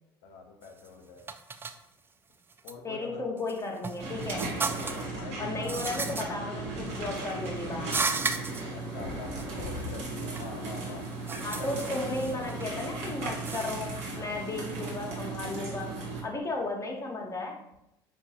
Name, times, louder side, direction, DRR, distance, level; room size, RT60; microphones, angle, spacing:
voice 1, 0.2-1.3 2.6-3.2 5.1-5.8 8.7-11.1 11.6-11.9, left 4 dB, 65° left, 3 dB, 0.7 m, -44 dB
sound 1, 0.6-0.9 1.3-1.8 2.5-2.7 3.4-5.1 5.6-6.2 6.9-7.3 7.8-8.6 9.4-9.5 9.8-10.5 10.9-12.7 13.3-13.8, right 4 dB, 20° right, 0.3 m, -34 dB
voice 2, 2.8-4.5 5.4-8.0 11.4-15.9 16.2-17.6, left 2 dB, 25° left, 1 dB, 0.7 m, -35 dB
sound 2, 4.0-16.2, right 2 dB, 65° right, 1.1 m, -36 dB
4.4 x 2.4 x 2.8 m, 0.83 s
hypercardioid pair, 65°, 11 cm